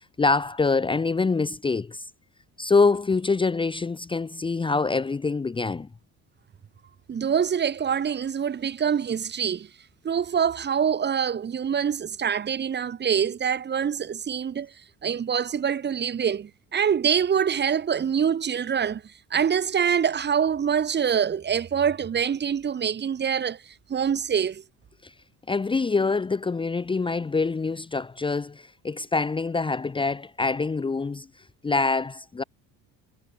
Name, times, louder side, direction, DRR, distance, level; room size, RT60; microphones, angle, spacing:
voice 1, 0.2-2.0 2.6-5.9 25.0-25.1 25.5-31.3 31.6-32.4, left 4 dB, 15° left, 1.1 m, -25 dB
voice 2, 7.1-9.7 10.0-14.7 15.0-19.0 19.3-23.6 23.9-24.6, right 7 dB, 30° right, 2.4 m, -25 dB
cardioid pair, 135°, 34 cm